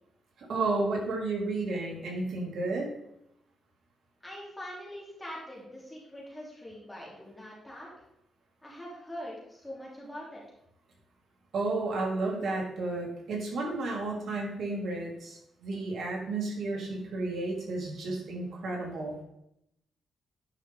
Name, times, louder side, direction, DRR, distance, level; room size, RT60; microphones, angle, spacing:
voice 1, 0.5-2.9 11.5-19.1, right 2 dB, 65° right, -1 dB, 2.6 m, -32 dB
voice 2, 4.2-7.9 8.6-10.4, equal, 10° left, -5 dB, 3.2 m, -43 dB
9.9 x 5.6 x 3.7 m, 0.79 s
cardioid pair, 115°, 0 cm